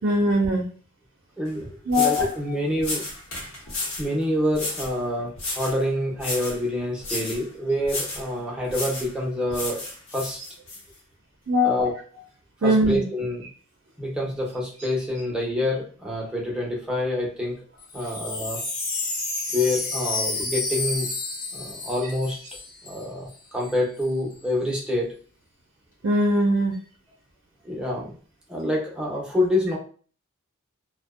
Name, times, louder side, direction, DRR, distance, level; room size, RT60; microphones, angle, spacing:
voice 1, 0.0-0.6 1.9-2.6 11.5-11.9 12.6-13.0 26.0-26.7, left 1 dB, 60° right, 1 dB, 0.4 m, -21 dB
voice 2, 1.4-3.0 4.0-9.8 10.1-10.4 11.6-11.9 12.6-13.4 14.0-17.6 17.9-18.6 19.5-21.1 21.5-22.4 22.8-25.1 27.6-28.2 28.5-29.8, left 1 dB, 5° right, -3 dB, 0.5 m, -27 dB
sound 1, 1.5-1.6 1.9-2.3 2.8-4.1 4.5-4.9 5.4-5.8 6.2-6.6 7.0-7.4 7.8-8.3 8.7-9.1 9.5-10.8, left 2 dB, 85° left, 0.9 m, -32 dB
Wind chime, 17.8-23.0 23.3-23.4 23.6-24.1, left 3 dB, 40° left, 0.5 m, -30 dB
2.5 x 2.1 x 2.3 m, 0.42 s
head